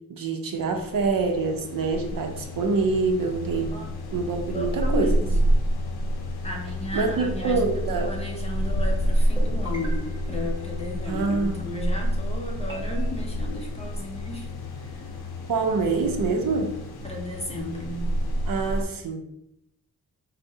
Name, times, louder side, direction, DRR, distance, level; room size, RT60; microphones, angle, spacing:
voice 1, 0.1-3.7 4.1-5.2 6.9-8.1 11.1-11.6 15.5-16.7 18.5-19.2, right 4 dB, 65° right, 4 dB, 0.6 m, -25 dB
sound 1, 0.5-18.8, equal, 75° left, 0.6 m, -28 dB
voice 2, 4.5-5.4 6.4-15.1 17.0-18.1, left 1 dB, 15° left, 1 dB, 0.5 m, -34 dB
sound 2, 9.3-11.5 12.7-13.1, equal, 10° right, 1.3 m, -42 dB
4.4 x 2.0 x 2.7 m, 0.80 s
wide cardioid pair, 100°, 37 cm